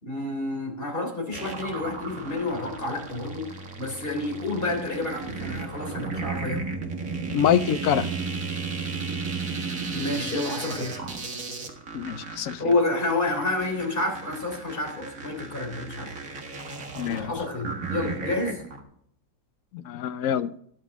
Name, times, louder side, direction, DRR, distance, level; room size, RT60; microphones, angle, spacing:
voice 1, 0.0-6.7 9.9-11.1 12.6-16.1 17.0-18.6, left 2 dB, 30° left, 3.7 m, -29 dB
sound 1, 1.3-18.8, right 4 dB, 50° right, 2.1 m, -34 dB
voice 2, 7.3-8.1 11.9-12.6 17.0-17.3 19.7-20.5, left 9 dB, 65° left, 0.9 m, -25 dB
21.5 x 7.3 x 3.6 m
omnidirectional pair, 1.9 m